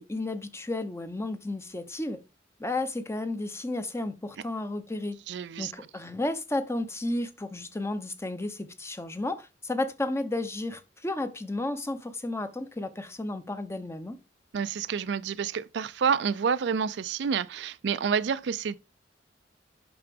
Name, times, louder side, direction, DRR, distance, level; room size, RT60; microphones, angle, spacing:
voice 1, 0.0-2.2 2.6-5.2 5.6-14.2, left 2 dB, 15° left, 0.7 m, -33 dB
voice 2, 5.3-5.7 14.5-18.8, right 6 dB, 70° right, 0.4 m, -28 dB
8.6 x 5.9 x 3.5 m
head